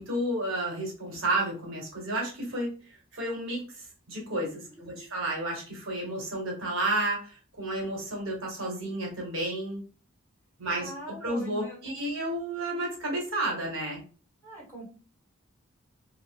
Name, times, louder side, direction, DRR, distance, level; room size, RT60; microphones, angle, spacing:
voice 1, 0.0-2.7 3.1-9.8 10.6-10.9 11.2-14.0, right 1 dB, 75° right, -2 dB, 1.2 m, -31 dB
voice 2, 4.7-5.1 10.7-12.1 14.4-14.8, right 1 dB, 15° left, -5 dB, 1.7 m, -44 dB
2.8 x 2.3 x 3.4 m, 0.38 s
head